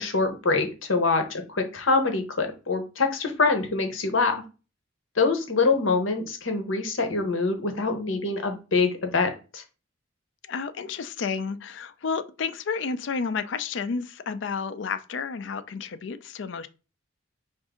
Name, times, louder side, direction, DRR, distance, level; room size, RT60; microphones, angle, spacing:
voice 1, 0.0-4.4 5.2-9.6, left 3 dB, 85° left, 1.0 m, -25 dB
voice 2, 10.5-16.7, left 5 dB, 65° left, 0.4 m, -31 dB
5.0 x 2.6 x 3.6 m
head